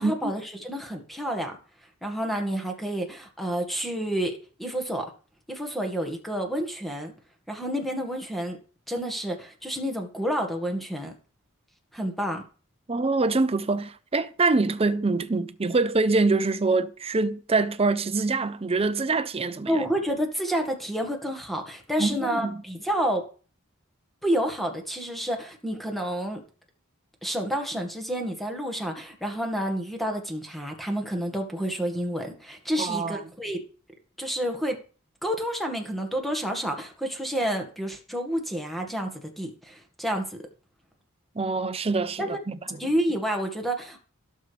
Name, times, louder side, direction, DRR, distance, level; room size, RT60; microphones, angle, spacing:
voice 1, 0.0-1.6 2.0-5.1 5.5-7.1 7.5-8.6 8.9-11.1 11.9-12.4 19.7-23.2 24.2-26.4 27.2-33.6 34.2-34.8 35.2-40.4 42.2-42.4 42.8-44.0, equal, ahead, 1.8 m, -29 dB
voice 2, 12.9-19.8 22.0-22.6 32.8-33.2 41.4-42.6, right 3 dB, 25° right, 0.6 m, -25 dB
16.5 x 6.5 x 3.4 m
head